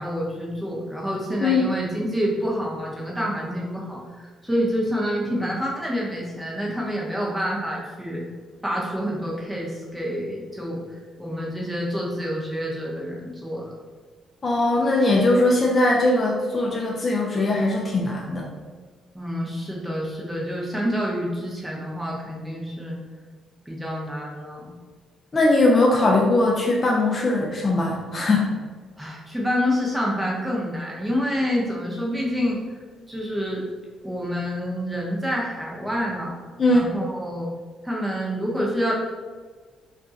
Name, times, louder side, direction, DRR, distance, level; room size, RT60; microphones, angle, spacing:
voice 1, 0.0-8.3 8.6-13.7 19.1-23.0 23.7-24.7 29.0-32.6 33.1-33.7 34.0-36.4 36.7-37.5 37.8-38.9, equal, 10° right, -4 dB, 0.8 m, -27 dB
voice 2, 14.4-18.5 25.3-28.5 36.6-36.9, left 2 dB, 35° left, -2 dB, 0.5 m, -20 dB
2.5 x 2.2 x 3.9 m, 1.4 s
cardioid pair, 90°, 0 cm